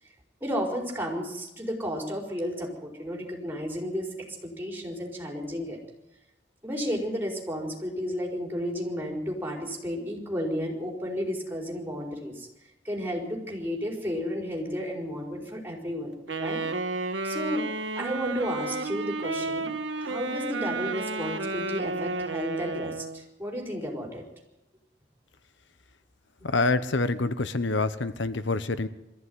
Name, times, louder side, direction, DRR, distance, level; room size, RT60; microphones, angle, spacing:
voice 1, 0.4-4.1 4.4-5.8 6.6-12.5 12.8-16.1 16.4-16.6 17.2-17.6 18.0-19.7 20.0-24.2, equal, 10° right, 0 dB, 4.9 m, -32 dB
Wind instrument woodwind instrument, 16.3-23.2, right 3 dB, 80° right, 1.5 m, -32 dB
voice 2, 26.4-28.9, left 3 dB, 75° left, 12 dB, 1.1 m, -26 dB
22.0 x 15.0 x 9.7 m, 0.93 s
head